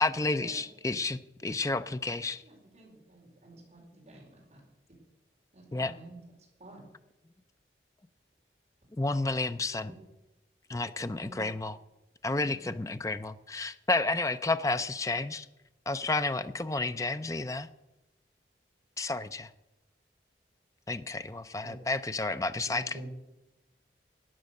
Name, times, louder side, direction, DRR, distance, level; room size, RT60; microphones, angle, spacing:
voice 1, 0.0-2.4 5.7-5.9 9.0-9.9 10.7-11.7 12.2-15.5 15.9-17.7 19.0-19.5 20.9-23.0, left 3 dB, 20° left, 11 dB, 0.5 m, -31 dB
voice 2, 2.4-4.6 5.5-6.8 11.2-11.5 12.6-12.7, right 2 dB, 40° right, -2 dB, 4.6 m, -52 dB
voice 3, 22.6-23.1, right 1 dB, 85° right, 0 dB, 4.8 m, -45 dB
14.0 x 9.3 x 6.5 m, 0.98 s
head